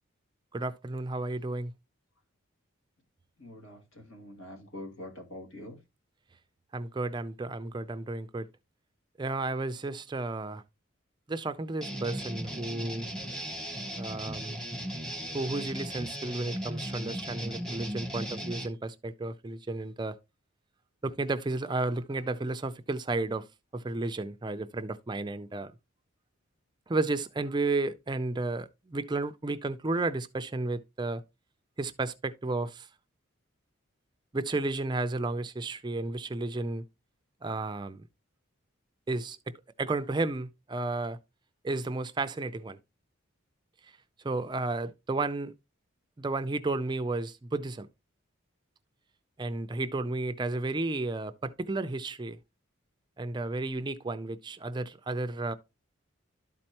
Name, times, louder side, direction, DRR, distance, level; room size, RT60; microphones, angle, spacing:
voice 1, 0.5-1.7 6.7-8.5 9.2-10.6 11.3-13.1 14.0-14.6 15.3-20.2 21.0-25.7 26.9-31.2 31.8-32.9 34.3-36.8 37.4-38.0 39.1-41.2 41.6-42.8 43.8-44.0 44.2-45.5 46.2-47.9 49.4-52.4 53.2-55.5, right 2 dB, 20° right, 0.4 m, -32 dB
voice 2, 3.4-5.8, left 1 dB, 70° left, 2.2 m, -45 dB
sound 1, 11.8-18.7, equal, 5° left, 0.9 m, -37 dB
12.0 x 4.3 x 2.9 m
head